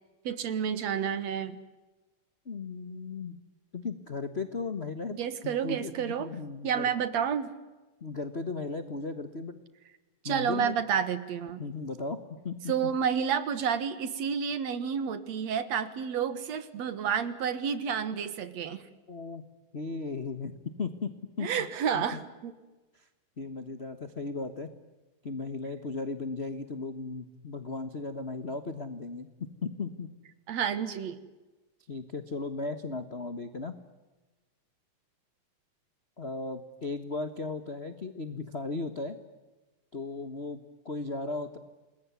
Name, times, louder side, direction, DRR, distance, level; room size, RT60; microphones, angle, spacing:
voice 1, 0.2-1.6 5.2-6.3 6.6-7.5 10.2-11.6 12.7-18.8 21.4-22.5 30.5-31.2, right 7 dB, 60° right, 13 dB, 2.5 m, -30 dB
voice 2, 2.4-3.4 3.7-5.2 5.4-6.9 8.0-9.6 10.2-10.7 11.6-12.2 12.4-12.7 19.1-19.4 19.7-20.5 20.8-21.5 21.9-22.0 23.4-24.7 25.2-30.1 31.9-33.8 36.2-39.2 39.9-41.6, left 3 dB, 75° left, 9 dB, 0.5 m, -36 dB
28.5 x 21.0 x 9.5 m, 1.2 s
omnidirectional pair, 3.7 m